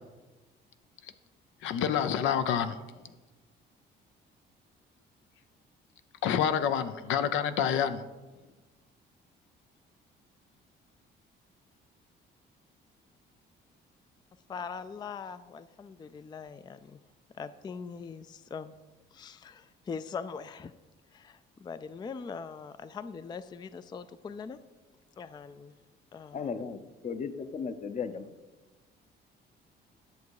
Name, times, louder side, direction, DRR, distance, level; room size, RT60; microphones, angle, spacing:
voice 1, 1.6-2.8 6.2-8.0, left 8 dB, 85° left, 11 dB, 0.7 m, -27 dB
voice 2, 14.5-17.0 17.4-18.7 19.1-20.7 21.1-24.6 25.2-25.7 26.1-26.5, left 5 dB, 20° left, 13 dB, 0.3 m, -41 dB
voice 3, 26.3-28.3, left 6 dB, 35° left, 11 dB, 0.7 m, -36 dB
10.5 x 6.8 x 4.7 m, 1.2 s
cardioid pair, 110°, 20 cm